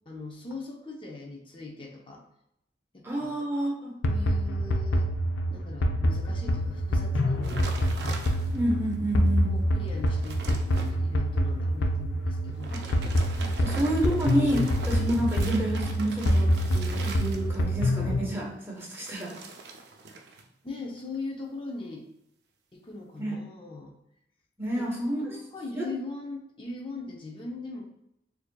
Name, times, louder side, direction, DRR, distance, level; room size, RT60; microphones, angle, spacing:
voice 1, 0.1-2.2 2.9-3.3 4.1-5.1 5.5-7.7 9.5-12.8 13.3-14.1 20.6-22.1 22.7-23.9 24.8-24.9 25.3-27.9, left 3 dB, 30° left, 1 dB, 0.6 m, -40 dB
voice 2, 3.0-4.0 8.5-9.5 12.7-12.8 13.6-19.4 23.2-23.4 24.6-25.4 25.8-25.9, right 1 dB, 10° right, -3 dB, 0.9 m, -29 dB
sound 1, 4.0-18.3, equal, 85° left, 0.5 m, -26 dB
sound 2, 7.4-8.7 9.3-9.4 9.8-10.9 12.5-17.8 18.8-20.5 20.8-21.2, right 3 dB, 60° right, 0.5 m, -42 dB
6.6 x 2.6 x 2.2 m, 0.81 s
head